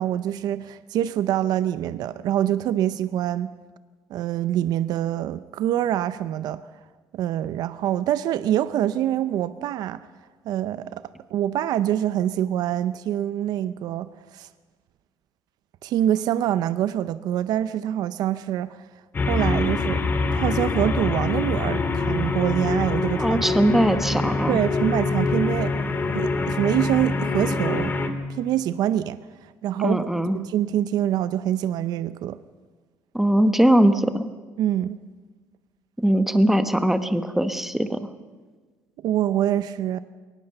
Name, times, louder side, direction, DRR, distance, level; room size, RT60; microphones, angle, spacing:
voice 1, 0.0-3.5 4.1-6.6 7.1-10.0 10.4-11.0 11.3-14.5 15.8-18.8 19.2-20.0 20.3-23.7 24.5-25.8 26.1-28.0 28.3-30.1 30.3-32.4 34.6-35.0 39.0-40.0, right 11 dB, 65° right, 0.6 m, -25 dB
sound 1, 19.1-28.1, left 3 dB, 25° left, 1.9 m, -25 dB
voice 2, 23.2-24.6 29.8-30.4 33.1-34.2 36.0-38.0, right 1 dB, 5° right, 1.1 m, -20 dB
22.0 x 19.0 x 6.7 m
cardioid pair, 130°, 7 cm